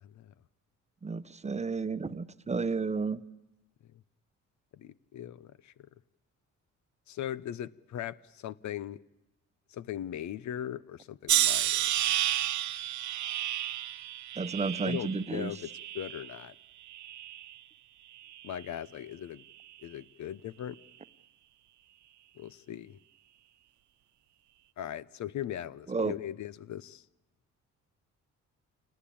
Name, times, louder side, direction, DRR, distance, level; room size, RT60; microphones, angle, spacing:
voice 1, 0.0-0.3 4.8-5.7 7.1-9.0 9.7-11.8 14.8-16.5 18.4-19.4 19.8-20.8 22.4-23.0 24.8-27.0, left 11 dB, 70° left, 18 dB, 0.9 m, -39 dB
voice 2, 1.0-3.2 14.4-15.5 25.9-26.1, right 4 dB, 20° right, 13 dB, 0.9 m, -32 dB
sound 1, 11.3-16.4 16.9-17.6 18.3-18.6, right 12 dB, 70° right, 1.1 m, -31 dB
28.0 x 19.0 x 8.7 m, 0.99 s
cardioid pair, 90°, 30 cm